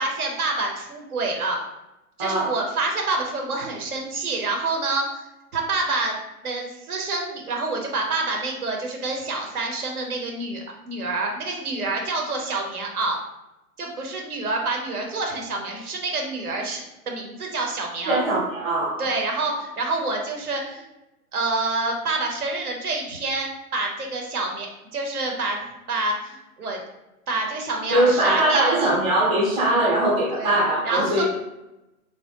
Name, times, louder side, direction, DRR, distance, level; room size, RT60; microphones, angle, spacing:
voice 1, 0.0-1.6 2.2-5.2 5.5-6.2 6.4-13.2 13.8-18.2 19.0-20.8 21.3-26.8 27.3-29.0 30.3-30.5 30.8-31.2, right 3 dB, 75° right, 1 dB, 0.8 m, -27 dB
voice 2, 2.2-2.5 18.1-19.1 27.9-31.2, right 1 dB, 15° right, -5 dB, 0.7 m, -21 dB
3.3 x 2.2 x 2.8 m, 0.95 s
figure-of-eight pair, 120°, 45 cm